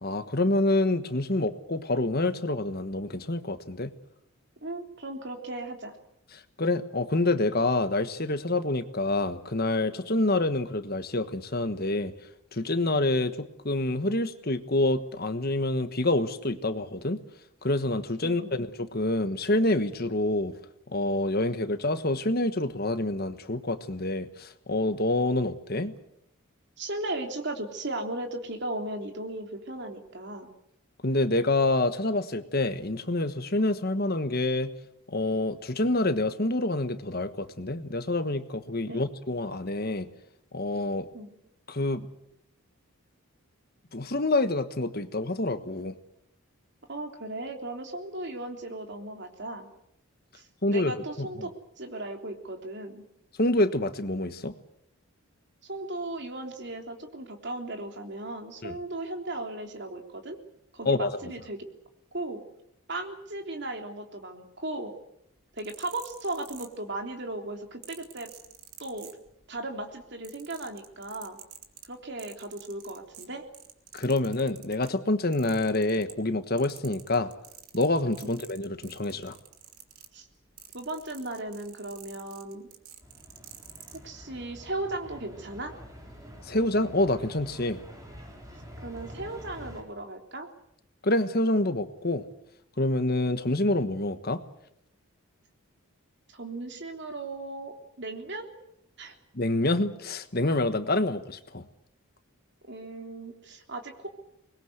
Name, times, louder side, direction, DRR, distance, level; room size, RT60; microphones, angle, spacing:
voice 1, 0.0-3.9 6.3-12.1 12.5-17.2 17.6-20.6 20.9-25.9 31.0-34.7 35.1-40.1 40.5-41.1 41.7-42.1 43.9-46.0 50.6-51.5 53.4-54.5 58.6-58.8 60.8-61.3 73.9-77.3 77.7-79.4 86.4-87.8 91.0-92.2 92.8-94.4 99.3-101.7, left 2 dB, 45° left, 10 dB, 1.4 m, -27 dB
voice 2, 4.6-6.0 18.2-18.6 26.8-30.5 38.9-39.1 41.1-41.3 46.9-49.7 50.3-51.5 51.8-53.0 55.6-60.4 60.7-61.6 62.1-62.4 62.9-64.9 65.6-68.3 68.8-69.1 69.5-71.4 71.9-73.4 78.2-78.3 80.1-80.3 80.7-82.7 84.0-85.7 88.8-90.5 96.3-98.5 99.0-99.1 102.6-104.1, right 2 dB, 50° right, 4 dB, 3.4 m, -36 dB
sound 1, 65.4-67.1 67.8-69.6 69.9-74.9 75.3-76.3 76.6-84.0 84.7-84.9, right 10 dB, 85° right, 2.8 m, -49 dB
sound 2, 83.0-89.8, equal, 15° right, 4.7 m, -47 dB
24.5 x 21.0 x 8.0 m, 0.78 s
head